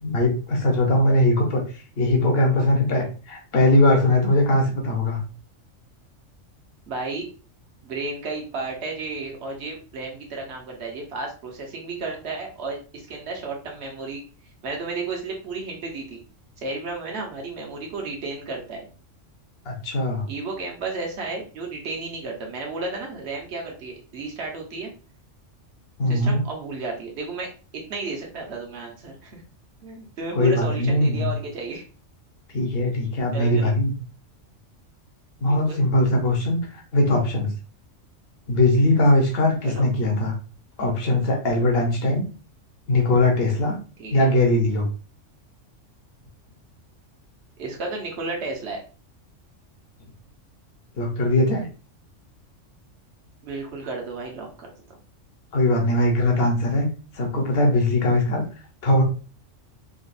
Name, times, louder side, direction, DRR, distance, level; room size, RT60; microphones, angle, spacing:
voice 1, 0.0-1.6 2.0-5.2 19.7-20.2 26.0-26.4 30.3-31.3 32.5-33.9 35.4-37.5 38.5-40.3 40.8-42.2 42.9-43.8 44.1-44.9 51.0-51.7 55.5-56.9 57.1-58.4 58.8-59.0, left 1 dB, 55° left, 1 dB, 1.1 m, -20 dB
voice 2, 6.9-7.3 7.8-14.2 14.6-16.2 16.6-18.9 20.3-24.9 26.1-27.5 27.9-29.4 29.8-31.8 33.3-33.7 35.5-35.8 39.6-39.9 44.0-44.3 47.6-48.8 53.4-54.7, right 3 dB, 60° right, 1 dB, 1.2 m, -33 dB
3.9 x 2.5 x 2.5 m, 0.35 s
omnidirectional pair, 1.3 m